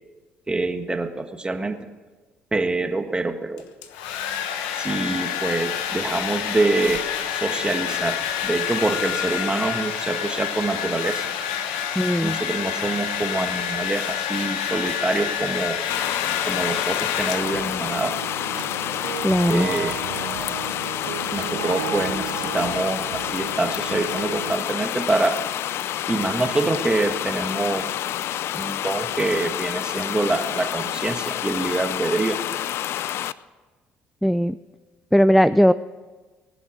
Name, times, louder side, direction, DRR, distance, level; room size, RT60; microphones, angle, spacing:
voice 1, 0.5-1.8 2.5-3.6 4.8-11.2 12.2-15.8 16.4-18.2 19.5-20.0 21.3-25.4 26.1-27.9 28.5-32.5, right 2 dB, 20° right, 7 dB, 1.5 m, -25 dB
Domestic sounds home sounds, 3.6-17.9, left 9 dB, 85° left, 1.1 m, -28 dB
voice 2, 12.0-12.4 19.2-19.7 34.2-34.6 35.1-35.7, equal, ahead, 15 dB, 0.4 m, -18 dB
sound 1, 15.9-33.3, left 12 dB, 65° left, 0.4 m, -28 dB
sound 2, 17.4-24.5, right 13 dB, 90° right, 0.6 m, -34 dB
20.0 x 7.1 x 8.4 m, 1.3 s
hypercardioid pair, 65°, 5 cm